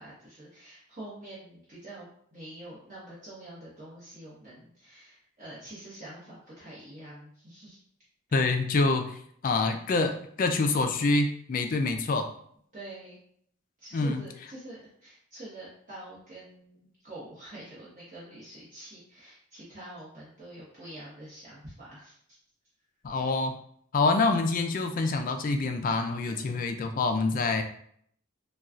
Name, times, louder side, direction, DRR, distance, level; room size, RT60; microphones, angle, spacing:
voice 1, 0.0-7.8 12.7-13.2 13.8-22.2 26.3-26.8, right 1 dB, 40° right, -9 dB, 1.1 m, -46 dB
voice 2, 8.3-9.2 9.4-12.3 13.9-14.2 23.0-23.5 23.9-27.6, left 3 dB, 40° left, 6 dB, 0.4 m, -26 dB
4.1 x 2.3 x 2.4 m, 0.65 s
head